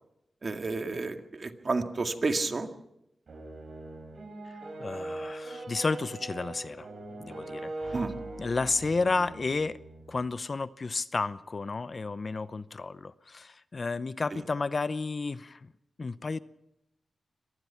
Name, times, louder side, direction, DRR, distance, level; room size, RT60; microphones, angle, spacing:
voice 1, 0.4-2.7 7.9-8.1 14.3-14.4, right 3 dB, 45° right, 6 dB, 2.0 m, -31 dB
sound 1, 3.3-10.2, right 2 dB, 65° right, 4.5 m, -41 dB
voice 2, 4.8-6.9 7.2-8.0 8.4-9.8 10.1-15.6 16.0-16.4, left 3 dB, 45° left, 15 dB, 0.7 m, -32 dB
25.0 x 19.0 x 5.8 m, 0.84 s
cardioid pair, 70°, 0 cm